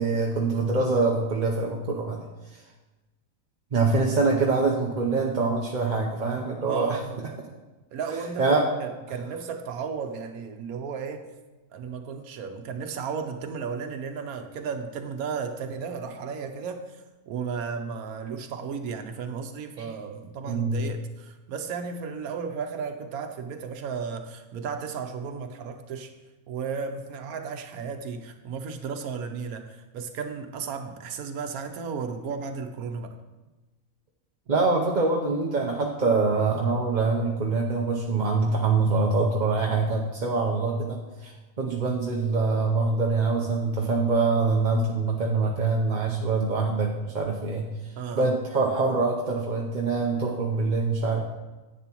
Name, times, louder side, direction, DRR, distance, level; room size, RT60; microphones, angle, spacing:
voice 1, 0.0-2.2 3.7-7.0 8.4-8.7 19.8-19.9 20.5-20.8 34.5-41.3 41.6-47.7 48.1-51.2, right 3 dB, 40° right, -1 dB, 0.8 m, -24 dB
voice 2, 6.7-7.5 7.9-11.3 11.7-26.1 26.5-33.2 48.0-48.3, right 5 dB, 85° right, 6 dB, 1.2 m, -34 dB
10.5 x 8.6 x 3.0 m, 1.1 s
omnidirectional pair, 1.5 m